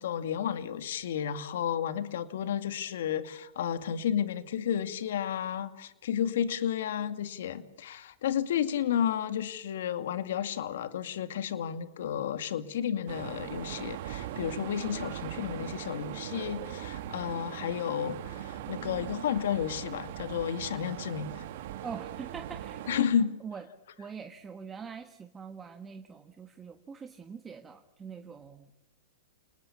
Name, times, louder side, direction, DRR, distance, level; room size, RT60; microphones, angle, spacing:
voice 1, 0.0-21.4 22.9-23.3, left 9 dB, 70° left, 10 dB, 2.3 m, -32 dB
sound 1, 13.1-23.0, right 12 dB, 60° right, 2.3 m, -40 dB
voice 2, 21.8-22.9 23.4-23.6 24.0-28.8, right 6 dB, 15° right, 7 dB, 1.5 m, -43 dB
29.0 x 20.0 x 7.1 m, 0.89 s
hypercardioid pair, 130°, 0 cm